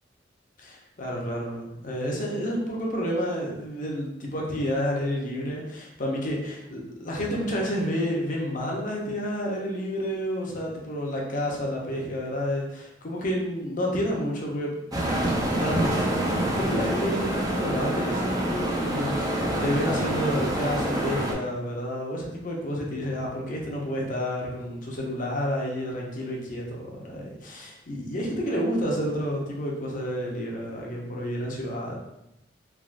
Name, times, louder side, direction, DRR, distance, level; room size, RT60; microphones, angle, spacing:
voice 1, 0.6-15.2 15.6-32.0, equal, 45° left, -1 dB, 0.6 m, -30 dB
sound 1, 14.9-21.3, right 1 dB, 20° right, 0.4 m, -26 dB
3.4 x 2.4 x 2.4 m, 0.86 s
head